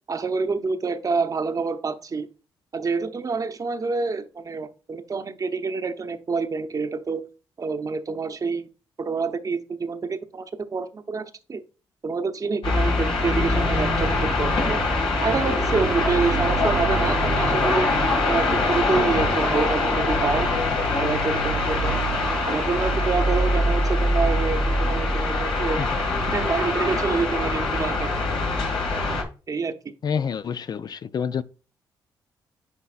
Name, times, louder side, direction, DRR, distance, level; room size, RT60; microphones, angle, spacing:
voice 1, 0.1-2.3 2.7-7.3 7.6-8.7 9.0-11.6 12.0-14.8 15.2-17.9 18.3-20.6 20.8-22.0 22.5-25.8 26.3-28.2 29.5-29.9, right 4 dB, 40° right, 0.8 m, -27 dB
sound 1, 12.6-29.2, left 2 dB, 75° left, 1.9 m, -23 dB
voice 2, 30.0-31.4, left 7 dB, 50° left, 0.4 m, -27 dB
9.7 x 4.0 x 2.4 m
supercardioid pair, 55°, 9 cm